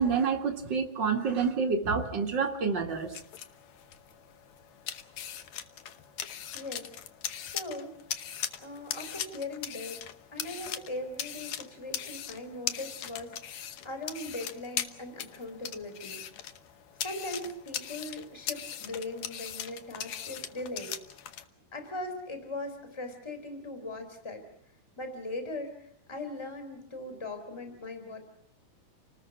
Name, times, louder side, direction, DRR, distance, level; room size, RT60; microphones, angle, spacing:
voice 1, 0.0-3.1, right 5 dB, 40° right, 2 dB, 1.7 m, -28 dB
sound 1, 2.9-21.4, left 10 dB, 75° left, 1.6 m, -40 dB
voice 2, 6.5-6.9 7.5-7.9 8.6-10.0 10.3-16.2 17.0-20.9 21.7-24.4 25.0-28.2, left 2 dB, 5° left, 7 dB, 3.2 m, -39 dB
30.0 x 19.5 x 6.0 m, 0.69 s
omnidirectional pair, 4.6 m